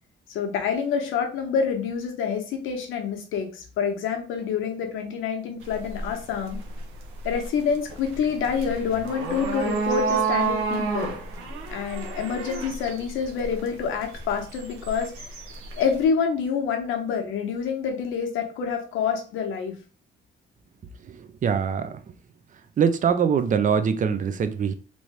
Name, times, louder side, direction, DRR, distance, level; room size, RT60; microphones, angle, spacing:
voice 1, 0.3-6.6 7.2-11.1 11.7-15.3 15.8-19.8, left 6 dB, 90° left, 0.9 m, -27 dB
sound 1, 5.6-16.0, right 4 dB, 90° right, 0.8 m, -31 dB
voice 2, 21.2-22.0 22.8-24.7, right 7 dB, 40° right, 0.5 m, -23 dB
3.1 x 2.7 x 3.2 m
cardioid pair, 90°, 20 cm